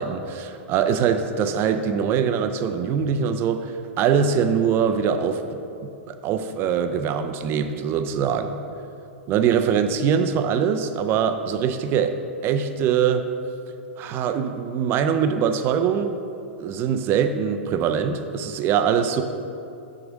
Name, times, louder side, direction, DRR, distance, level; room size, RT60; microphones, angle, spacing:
voice 1, 0.0-5.6 6.1-8.6 9.3-12.1 12.4-13.2 14.0-16.1 16.6-19.2, right 7 dB, 35° right, 8 dB, 0.5 m, -23 dB
6.2 x 4.9 x 6.2 m, 2.7 s
figure-of-eight pair, 105°, 7 cm